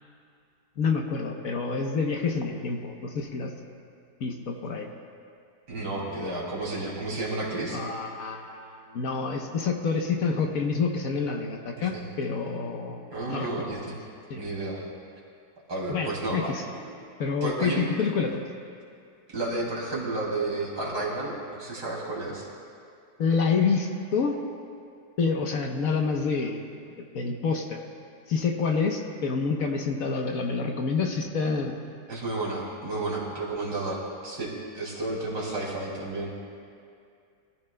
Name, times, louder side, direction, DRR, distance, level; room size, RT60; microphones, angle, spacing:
voice 1, 0.8-3.5 4.2-4.9 7.7-13.0 13.3-13.7 14.3-14.4 15.9-16.6 17.2-18.4 23.2-24.4 25.2-26.6 27.0-27.8 28.3-31.7, left 5 dB, 60° left, 2 dB, 1.2 m, -28 dB
voice 2, 5.7-7.8 11.8-12.1 13.1-14.0 14.3-14.8 15.7-16.5 17.4-17.9 19.3-22.4 32.1-36.3, right 2 dB, 80° right, -4 dB, 3.2 m, -32 dB
22.0 x 14.0 x 2.2 m, 2.4 s
omnidirectional pair, 1.8 m